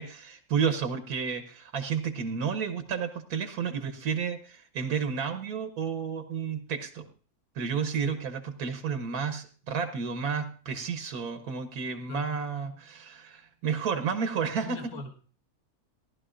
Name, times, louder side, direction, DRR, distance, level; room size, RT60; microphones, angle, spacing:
voice 1, 0.0-7.1 7.5-14.9, right 6 dB, 80° right, 9 dB, 1.4 m, -31 dB
voice 2, 14.6-15.1, left 2 dB, 30° left, 1 dB, 1.4 m, -40 dB
18.0 x 11.5 x 2.5 m, 0.41 s
omnidirectional pair, 1.6 m